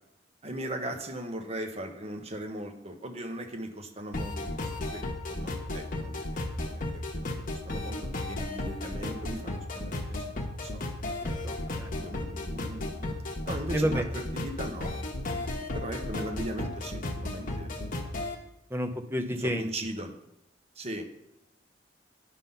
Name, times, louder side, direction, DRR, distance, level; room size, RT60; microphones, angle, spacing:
voice 1, 0.4-5.0 5.3-10.3 10.6-10.9 11.9-15.5 15.7-17.9 19.4-20.1 20.8-21.1, right 1 dB, 35° right, 4 dB, 1.1 m, -39 dB
sound 1, 4.1-18.3, left 1 dB, 50° left, 1.1 m, -34 dB
voice 2, 11.4-11.9 13.7-14.1 18.7-19.7, equal, 15° right, 7 dB, 0.6 m, -30 dB
10.0 x 3.8 x 5.5 m, 0.84 s
head